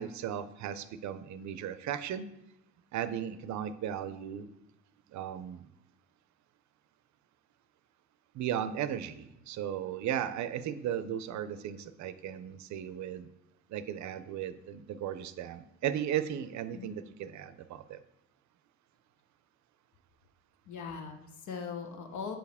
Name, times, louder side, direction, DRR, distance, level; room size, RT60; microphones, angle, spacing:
voice 1, 0.0-2.3 2.9-4.5 5.1-5.7 8.3-13.3 13.7-18.0, right 10 dB, 70° right, 13 dB, 0.5 m, -36 dB
voice 2, 20.7-22.4, left 6 dB, 75° left, 5 dB, 1.0 m, -40 dB
7.5 x 4.7 x 3.5 m, 0.86 s
cardioid pair, 90°, 30 cm